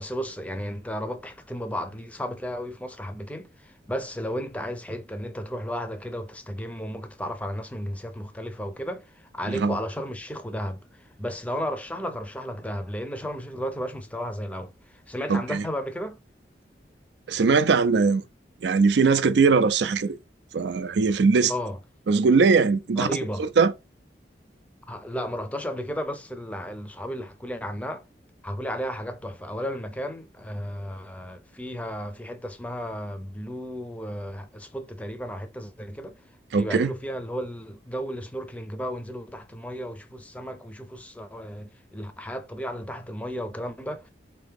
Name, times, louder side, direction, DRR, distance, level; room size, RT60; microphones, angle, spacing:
voice 1, 0.0-16.2 21.5-21.8 23.0-23.5 24.9-28.0 28.4-36.1 36.5-44.1, equal, 10° left, 0.5 m, -34 dB
voice 2, 15.3-15.6 17.3-18.2 18.6-20.2 20.5-21.5 22.1-23.1 23.4-23.7 36.5-36.9, right 4 dB, 75° right, 0.4 m, -20 dB
3.8 x 2.9 x 3.5 m
head